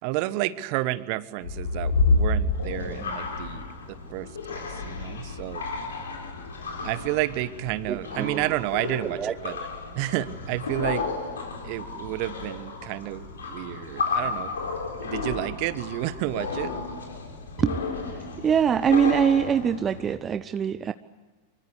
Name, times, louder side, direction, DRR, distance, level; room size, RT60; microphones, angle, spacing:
voice 1, 0.0-5.6 6.8-9.6 9.9-11.0 11.6-14.5 15.0-16.7, right 17 dB, 45° right, 16 dB, 1.2 m, -30 dB
sound 1, 1.4-20.1, left 3 dB, 70° left, 3.9 m, -31 dB
voice 2, 7.9-8.5 9.0-9.7 17.6-17.8 18.1-20.9, right 7 dB, 25° right, 12 dB, 0.7 m, -24 dB
25.0 x 24.5 x 8.1 m, 1.3 s
figure-of-eight pair, 90°, 0 cm